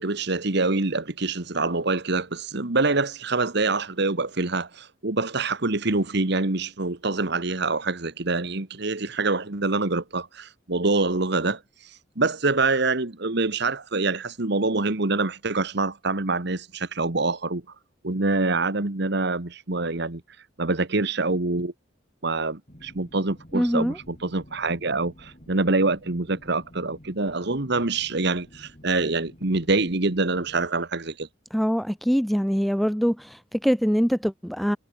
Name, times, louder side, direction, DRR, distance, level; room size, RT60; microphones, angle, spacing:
voice 1, 0.0-17.6 18.0-20.2 20.6-21.7 22.2-31.3, right 3 dB, 60° right, 1.6 m, -25 dB
sound 1, 22.7-30.7, equal, 40° left, 4.5 m, -50 dB
voice 2, 23.5-24.0 31.5-34.8, equal, ahead, 0.7 m, -23 dB
head